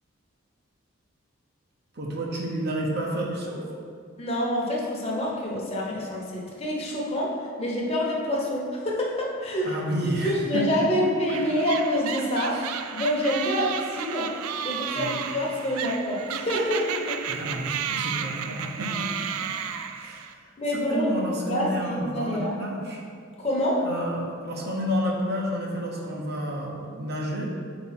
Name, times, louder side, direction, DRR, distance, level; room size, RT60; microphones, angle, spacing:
voice 1, 1.9-3.6 9.6-10.9 12.5-12.7 14.9-15.1 17.3-19.5 20.0-20.3 20.9-23.0 23.8-27.5, equal, 50° right, -2 dB, 0.9 m, -30 dB
voice 2, 4.2-7.3 7.6-9.8 10.2-12.6 12.9-14.3 14.6-17.2 20.6-21.1 21.4-22.5 23.4-23.8, left 1 dB, 30° left, -4 dB, 1.0 m, -27 dB
sound 1, 11.3-20.3, right 8 dB, 85° right, 0.4 m, -33 dB
5.0 x 3.9 x 5.8 m, 2.2 s
head